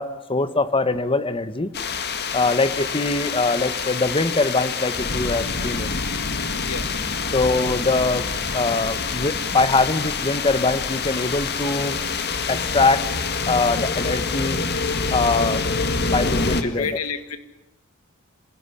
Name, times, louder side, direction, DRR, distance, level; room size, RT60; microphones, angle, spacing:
voice 1, 0.0-1.7 2.3-5.9 7.3-8.3 8.5-12.0 12.5-13.1 13.4-14.6 15.1-15.6 16.1-16.9, left 3 dB, 25° left, 13 dB, 1.3 m, -22 dB
sound 1, 1.7-16.6, left 4 dB, 50° left, 1.9 m, -26 dB
voice 2, 16.6-17.4, left 5 dB, 85° left, 10 dB, 2.1 m, -29 dB
27.0 x 16.5 x 10.0 m, 0.97 s
head